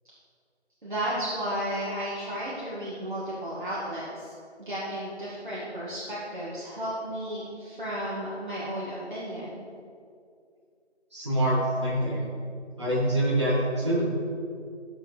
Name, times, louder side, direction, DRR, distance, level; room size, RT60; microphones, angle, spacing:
voice 1, 0.8-4.3 4.6-9.7, right 1 dB, 45° right, -9 dB, 2.1 m, -33 dB
voice 2, 11.1-12.2 12.8-14.1, right 1 dB, 25° right, -8 dB, 1.9 m, -25 dB
12.0 x 7.4 x 3.4 m, 2.3 s
figure-of-eight pair, 170°, 34 cm